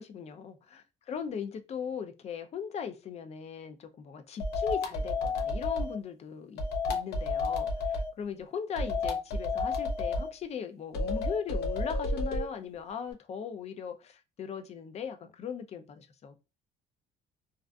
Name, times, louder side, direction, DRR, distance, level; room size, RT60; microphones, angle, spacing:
voice 1, 0.0-6.6 6.9-16.4, left 7 dB, 40° left, 0.4 m, -39 dB
sound 1, 4.4-6.0 6.6-8.1 8.8-10.3 10.9-12.5, left 3 dB, 75° left, 0.7 m, -31 dB
2.4 x 2.4 x 2.2 m
cardioid pair, 110°, 17 cm